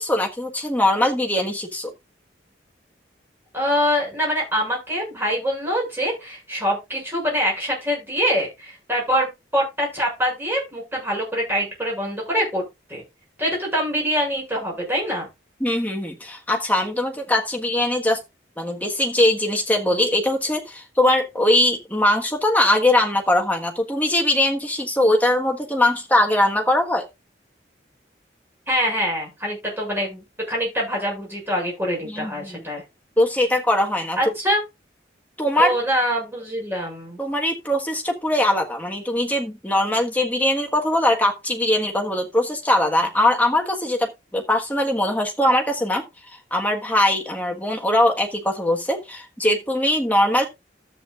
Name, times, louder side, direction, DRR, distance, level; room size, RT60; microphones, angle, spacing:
voice 1, 0.0-1.9 15.6-18.2 18.6-27.1 32.0-32.6 33.2-34.3 35.4-35.7 37.2-46.0 46.5-50.5, left 1 dB, 10° left, 1.5 m, -21 dB
voice 2, 3.5-12.6 12.9-13.0 13.4-15.3 28.7-32.8 34.2-34.6 35.6-37.2, equal, 10° right, 6.8 m, -24 dB
13.5 x 8.6 x 2.5 m
head